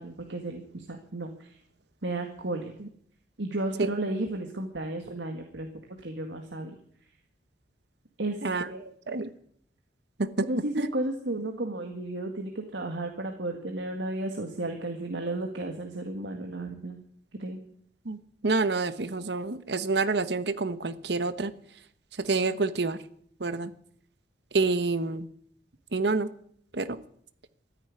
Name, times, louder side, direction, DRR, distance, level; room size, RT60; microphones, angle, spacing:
voice 1, 0.0-1.6 2.0-2.7 3.4-6.8 8.2-8.8 10.4-17.0 17.4-17.6, right 2 dB, 85° right, 3 dB, 1.9 m, -33 dB
voice 2, 18.4-21.5 22.2-23.0 23.4-23.7 24.5-25.3 25.9-26.3 26.7-26.9, right 3 dB, 70° right, 13 dB, 1.1 m, -27 dB
13.5 x 10.0 x 9.6 m, 0.64 s
head